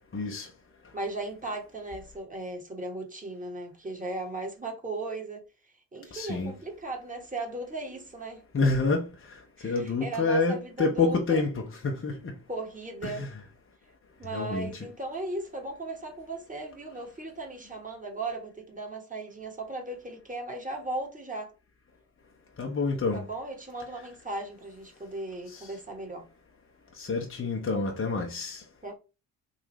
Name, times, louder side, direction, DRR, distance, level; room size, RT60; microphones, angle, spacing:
voice 1, 0.1-0.5 6.1-6.5 8.5-9.1 9.6-11.5 11.8-12.3 13.0-13.3 14.3-14.7 22.6-23.2 25.5-25.7 27.0-28.6, left 3 dB, 25° left, 0.9 m, -27 dB
voice 2, 0.9-5.4 5.9-8.4 9.6-11.4 12.5-13.2 14.2-21.5 23.1-26.3 28.8-28.9, right 2 dB, 15° right, 1.5 m, -37 dB
3.8 x 2.4 x 3.1 m
figure-of-eight pair, 40°, 50 cm